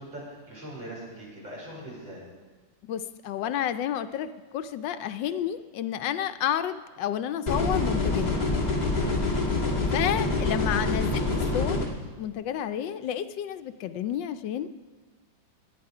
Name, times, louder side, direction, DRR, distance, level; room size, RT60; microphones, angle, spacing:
voice 1, 0.0-2.3, right 1 dB, 80° right, -4 dB, 5.8 m, -41 dB
voice 2, 2.8-8.3 9.9-14.7, left 10 dB, 75° left, 10 dB, 1.3 m, -30 dB
sound 1, 7.5-11.9, left 3 dB, 20° left, 2.1 m, -26 dB
21.5 x 9.3 x 4.9 m, 1.3 s
omnidirectional pair, 2.0 m